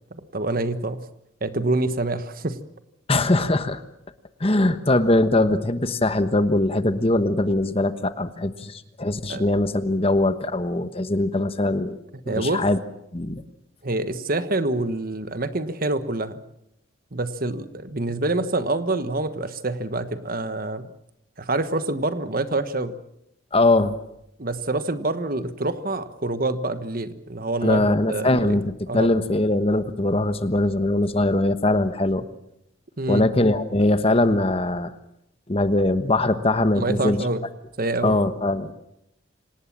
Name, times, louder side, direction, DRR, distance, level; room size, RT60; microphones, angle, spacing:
voice 1, 0.1-1.0 1.4-2.6 9.3-9.5 12.3-12.6 13.8-16.4 17.1-20.9 21.4-22.9 24.4-27.8 28.1-28.6 28.9-29.1 33.0-33.3 36.7-37.4 37.8-38.2, right 2 dB, 45° right, 11 dB, 1.3 m, -26 dB
voice 2, 3.1-3.8 4.4-12.0 12.3-12.8 13.1-13.4 23.5-23.9 27.6-32.2 33.1-34.9 35.5-37.2 38.0-38.7, left 2 dB, 30° left, 11 dB, 1.2 m, -21 dB
27.0 x 18.5 x 7.4 m, 0.80 s
head